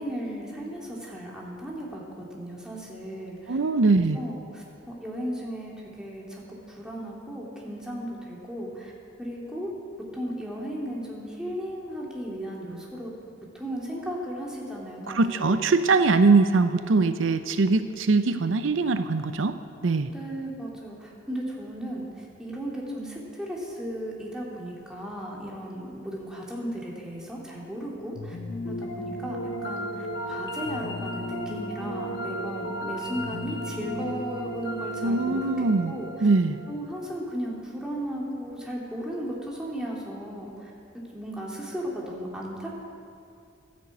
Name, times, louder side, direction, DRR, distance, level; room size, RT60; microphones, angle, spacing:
voice 1, 0.0-3.6 3.9-8.9 9.2-9.7 10.1-13.1 13.5-15.6 20.1-22.1 22.4-28.4 28.7-29.4 29.6-36.3 36.7-40.7 41.1-42.8, equal, 5° right, -4 dB, 2.7 m, -35 dB
voice 2, 3.5-4.2 15.1-19.6 19.8-20.1 35.0-35.9 36.2-36.6, right 3 dB, 85° right, 10 dB, 0.6 m, -22 dB
sound 1, 28.1-37.3, equal, 65° left, 1.4 m, -34 dB
13.0 x 10.5 x 8.3 m, 2.5 s
head